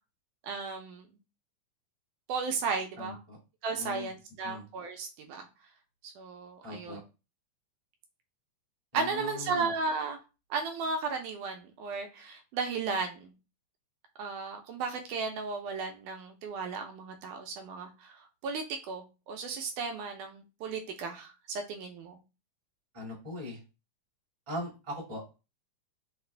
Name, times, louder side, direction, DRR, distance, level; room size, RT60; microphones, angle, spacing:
voice 1, 0.4-1.1 2.3-3.2 3.6-5.5 6.0-7.0 8.9-10.2 10.5-13.3 14.2-22.2, right 4 dB, 80° right, 4 dB, 2.1 m, -35 dB
voice 2, 3.0-3.4 3.7-4.1 4.4-4.6 6.6-7.0 8.9-9.7 22.9-23.6 24.5-25.3, left 1 dB, 15° right, -5 dB, 1.3 m, -40 dB
5.7 x 2.4 x 3.3 m, 0.30 s
omnidirectional pair, 3.7 m